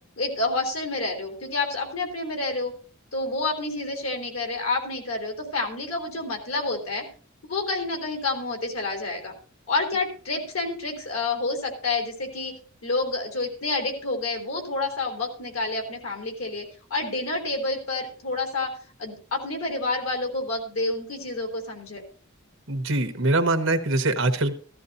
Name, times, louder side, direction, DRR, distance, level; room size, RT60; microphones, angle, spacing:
voice 1, 0.2-2.7 3.1-7.0 7.5-9.3 9.7-12.5 12.8-16.6 16.9-18.7 19.0-22.0, left 3 dB, 85° left, 2 dB, 3.4 m, -28 dB
voice 2, 22.7-24.5, right 2 dB, 70° right, 9 dB, 1.3 m, -23 dB
15.0 x 13.5 x 2.7 m, 0.41 s
head